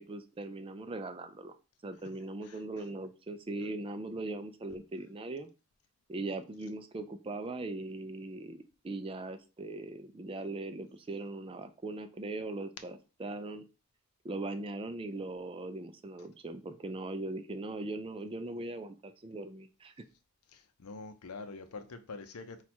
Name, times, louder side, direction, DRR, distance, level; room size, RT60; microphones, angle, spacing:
voice 1, 0.0-1.5 1.8-5.5 6.1-13.6 14.2-19.9, right 2 dB, 25° right, 0.3 m, -40 dB
voice 2, 20.5-22.6, left 3 dB, 80° left, 0.6 m, -45 dB
4.3 x 2.4 x 4.3 m
head